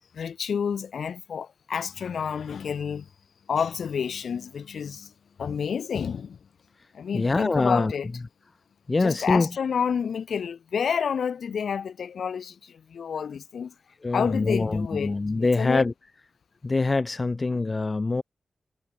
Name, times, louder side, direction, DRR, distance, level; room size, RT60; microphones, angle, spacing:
voice 1, 0.1-3.1 3.5-5.1 5.4-6.4 6.9-8.1 9.0-13.7 14.1-15.8, left 7 dB, 85° left, 5.2 m, -29 dB
voice 2, 7.1-7.9 8.9-9.5 14.0-15.9 16.6-18.2, left 3 dB, 35° left, 1.9 m, -24 dB
wide cardioid pair, 80°, 0 cm